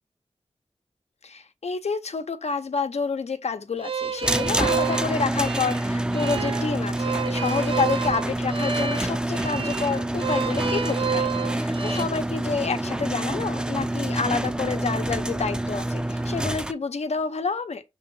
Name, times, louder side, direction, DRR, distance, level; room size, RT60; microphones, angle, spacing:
voice 1, 1.2-17.8, left 4 dB, 80° left, 0.8 m, -29 dB
sound 1, 3.8-12.0, right 6 dB, 55° right, 0.6 m, -30 dB
sound 2, 4.2-16.7, right 1 dB, 10° right, 0.5 m, -27 dB
6.2 x 3.7 x 5.4 m
wide cardioid pair, 95°, 11 cm